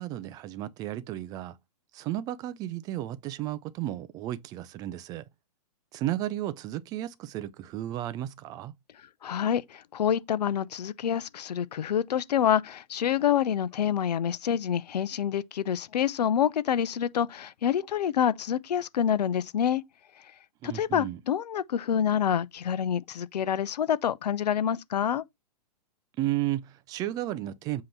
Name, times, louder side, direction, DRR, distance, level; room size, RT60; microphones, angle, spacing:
voice 1, 0.0-1.6 1.9-5.2 5.9-8.7 20.6-21.2 26.2-27.8, right 14 dB, 20° right, 0.4 m, -33 dB
voice 2, 9.2-19.8 20.6-25.2, left 9 dB, 80° left, 0.7 m, -27 dB
7.7 x 3.0 x 5.5 m
hypercardioid pair, 145°, 20 cm